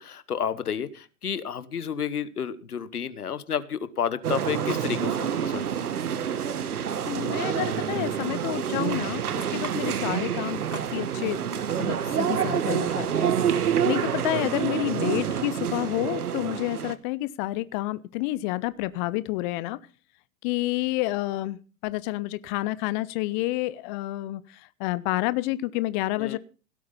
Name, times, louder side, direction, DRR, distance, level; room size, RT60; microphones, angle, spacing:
voice 1, 0.0-5.6 26.2-26.4, left 8 dB, 85° left, 1.3 m, -31 dB
sound 1, 4.2-16.9, right 8 dB, 80° right, 1.3 m, -27 dB
voice 2, 7.1-11.4 11.8-19.8 20.4-24.4 24.8-26.4, left 18 dB, 35° left, 0.6 m, -29 dB
17.0 x 8.6 x 5.4 m
hypercardioid pair, 110°, 44 cm